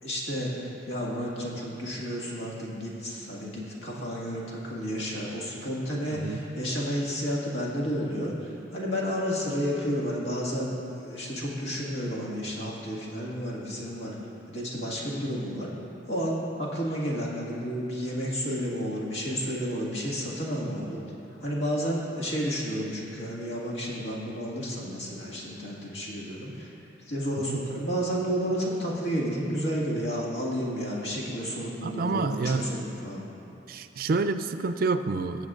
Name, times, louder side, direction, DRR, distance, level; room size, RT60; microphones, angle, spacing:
voice 1, 0.0-14.2 14.5-15.7 16.1-21.0 21.4-26.7 27.1-33.3, equal, 90° left, -5 dB, 1.9 m, -31 dB
voice 2, 31.8-32.7 33.7-35.5, right 3 dB, 50° right, 10 dB, 0.3 m, -28 dB
18.5 x 7.2 x 2.5 m, 2.9 s
head